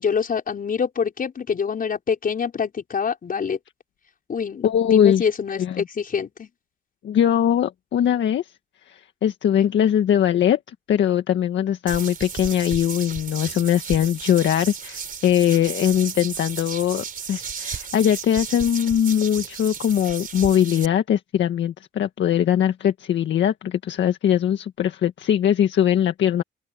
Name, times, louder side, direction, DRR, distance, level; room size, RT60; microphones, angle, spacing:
voice 1, 0.0-3.6 4.3-6.5, left 6 dB, 45° left, 5.9 m, -26 dB
voice 2, 4.6-5.3 5.6-5.8 7.0-8.5 8.9-10.6 10.9-26.4, left 10 dB, 70° left, 1.8 m, -21 dB
sound 1, 11.9-20.9, right 6 dB, 45° right, 3.9 m, -34 dB
open air
cardioid pair, 90°, 20 cm